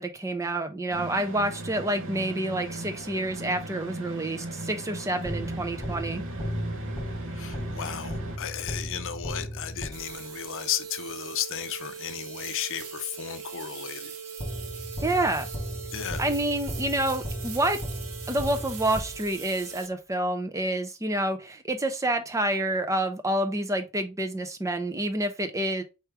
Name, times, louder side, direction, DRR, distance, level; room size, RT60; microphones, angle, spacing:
voice 1, 0.0-6.2 15.0-15.5 16.2-17.8 18.3-25.8, right 1 dB, 15° right, 0.6 m, -28 dB
sound 1, 0.9-8.4, right 2 dB, 60° right, 0.7 m, -38 dB
sound 2, 5.3-10.4 14.4-19.6, equal, 15° left, 1.1 m, -36 dB
voice 2, 7.3-14.1 15.9-16.2, left 9 dB, 60° left, 0.6 m, -34 dB
sound 3, 9.9-19.9, right 7 dB, 85° right, 0.9 m, -40 dB
4.6 x 3.2 x 3.2 m
head